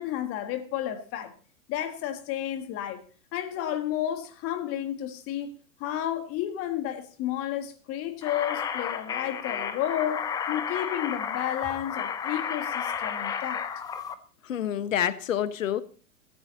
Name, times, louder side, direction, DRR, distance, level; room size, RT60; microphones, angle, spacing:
voice 1, 0.0-1.3 1.7-3.0 3.3-5.5 5.8-10.2 10.5-13.6, left 11 dB, 30° left, 2.0 m, -31 dB
sound 1, 8.2-14.1, left 7 dB, 10° left, 0.5 m, -32 dB
voice 2, 14.4-15.8, left 10 dB, 60° left, 1.3 m, -27 dB
17.0 x 14.5 x 2.8 m
figure-of-eight pair, 105°, 45 cm